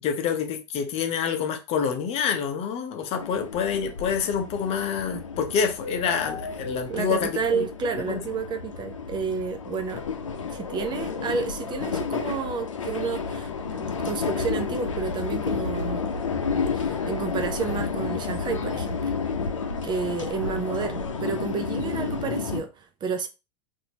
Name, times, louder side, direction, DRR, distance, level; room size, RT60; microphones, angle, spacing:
voice 1, 0.0-7.6 8.1-8.2, left 7 dB, 40° left, 0.8 m, -27 dB
sound 1, 3.2-22.6, left 5 dB, 85° left, 0.7 m, -31 dB
voice 2, 6.9-10.0 10.5-16.1 16.7-19.1 19.8-23.3, right 5 dB, 30° right, 0.5 m, -31 dB
4.2 x 2.7 x 2.8 m
hypercardioid pair, 90°, 16 cm